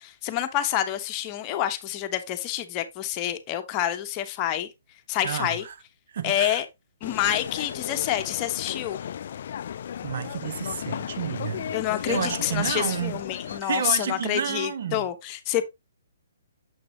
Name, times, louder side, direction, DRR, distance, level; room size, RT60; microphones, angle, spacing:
voice 1, 0.0-4.7 5.1-5.6 6.2-6.6 7.0-9.0 11.7-15.6, left 12 dB, 30° left, 1.0 m, -28 dB
voice 2, 5.2-5.7 6.1-6.6 10.0-11.8 12.0-13.2 13.5-15.1, right 8 dB, 55° right, 1.0 m, -30 dB
sound 1, 7.0-13.6, left 9 dB, 55° left, 0.3 m, -35 dB
7.3 x 5.9 x 2.8 m
hypercardioid pair, 140°, 0 cm